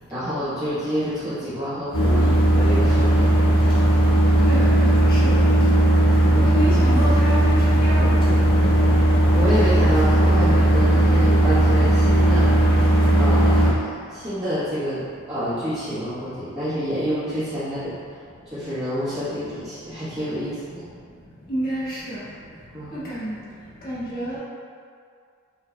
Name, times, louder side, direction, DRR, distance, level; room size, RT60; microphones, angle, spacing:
voice 1, 0.1-3.4 6.3-6.8 9.3-12.5 13.1-18.2 18.5-20.9 22.7-23.1, equal, 15° right, -17 dB, 1.4 m, -28 dB
sound 1, 1.9-13.7, right 1 dB, 65° left, 1.1 m, -17 dB
voice 2, 4.4-5.4 6.4-7.5 7.8-8.3 21.5-22.2 22.9-23.4 23.8-24.4, equal, 45° left, -9 dB, 1.3 m, -29 dB
5.5 x 3.2 x 2.3 m, 2.2 s
head